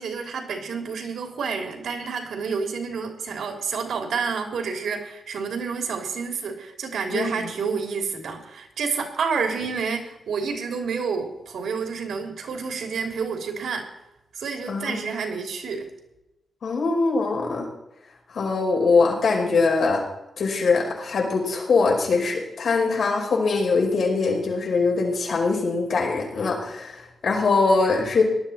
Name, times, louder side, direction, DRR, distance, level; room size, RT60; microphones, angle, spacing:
voice 1, 0.0-13.9 14.3-15.9, right 5 dB, 85° right, 3 dB, 3.2 m, -29 dB
voice 2, 7.1-7.5 14.7-15.1 16.6-17.7 18.3-20.0 20.4-28.2, left 4 dB, 60° left, 0 dB, 5.1 m, -22 dB
18.5 x 12.0 x 4.3 m, 0.91 s
wide cardioid pair, 145°, 0 cm